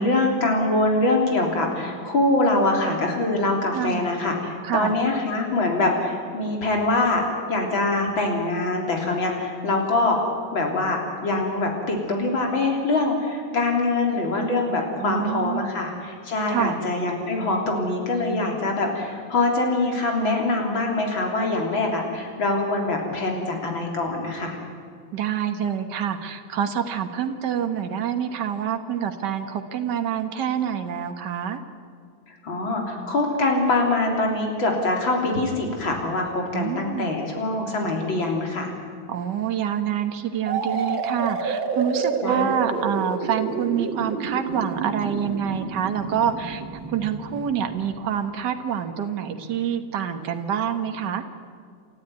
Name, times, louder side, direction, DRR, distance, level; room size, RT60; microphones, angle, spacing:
voice 1, 0.0-4.3 4.7-7.2 7.5-10.2 10.5-24.6 32.4-38.7 42.2-42.5, left 2 dB, 80° left, 1 dB, 4.2 m, -24 dB
voice 2, 3.7-4.1 4.6-4.9 15.0-15.7 16.5-16.8 25.1-31.6 36.5-37.1 39.1-46.6 46.9-51.2, right 8 dB, 60° right, 6 dB, 1.9 m, -27 dB
sound 1, 40.5-48.1, right 5 dB, 80° right, 2.4 m, -29 dB
28.5 x 14.0 x 9.6 m, 2.2 s
omnidirectional pair, 2.1 m